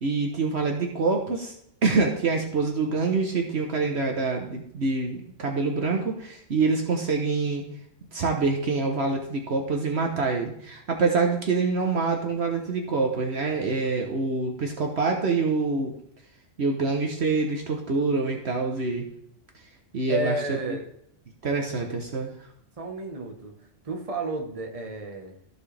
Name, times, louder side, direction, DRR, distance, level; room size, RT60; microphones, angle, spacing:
voice 1, 0.0-1.5 1.8-7.6 8.1-15.9 16.6-19.1 19.9-20.6 21.4-22.3, right 4 dB, 60° right, 2 dB, 1.3 m, -26 dB
voice 2, 20.1-20.9 22.8-23.5 23.8-25.3, right 1 dB, 30° right, 2 dB, 1.2 m, -32 dB
14.0 x 4.8 x 3.4 m, 0.72 s
omnidirectional pair, 1.3 m